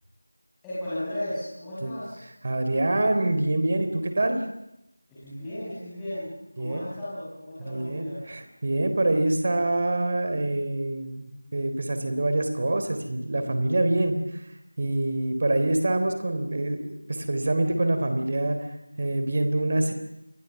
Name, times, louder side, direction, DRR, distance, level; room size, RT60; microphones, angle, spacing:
voice 1, 0.6-2.2 5.1-8.2, left 1 dB, 5° left, -13 dB, 6.0 m, -35 dB
voice 2, 2.4-4.4 6.6-6.8 7.7-14.4 14.8-16.8 17.1-18.7 19.0-19.9, right 1 dB, 35° right, 8 dB, 3.8 m, -25 dB
28.0 x 23.0 x 7.2 m, 0.88 s
figure-of-eight pair, 170°, 0 cm